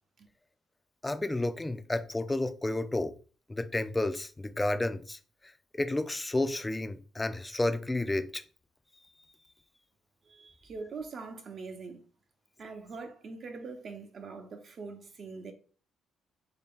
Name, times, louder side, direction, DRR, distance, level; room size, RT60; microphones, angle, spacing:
voice 1, 1.0-3.1 3.5-5.2 5.7-8.4, left 2 dB, 15° left, 0.4 m, -31 dB
voice 2, 10.3-12.0 12.6-15.5, right 4 dB, 55° right, 0.8 m, -43 dB
3.4 x 2.8 x 3.6 m
cardioid pair, 90°, 0 cm